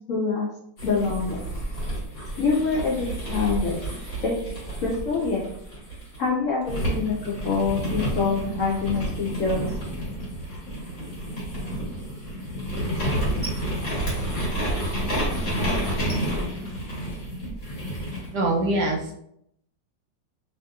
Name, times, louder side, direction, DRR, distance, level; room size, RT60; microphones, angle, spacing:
voice 1, 0.1-0.5 0.8-1.4 2.4-3.8 4.2-4.3 4.8-5.5 6.2-9.6, left 4 dB, 75° left, -4 dB, 0.7 m, -25 dB
sound 1, 0.8-6.2 6.7-18.3, right 1 dB, 45° left, 1.4 m, -30 dB
voice 2, 18.3-19.1, right 2 dB, 75° right, 0 dB, 1.1 m, -23 dB
2.8 x 2.8 x 2.3 m, 0.72 s
omnidirectional pair, 1.9 m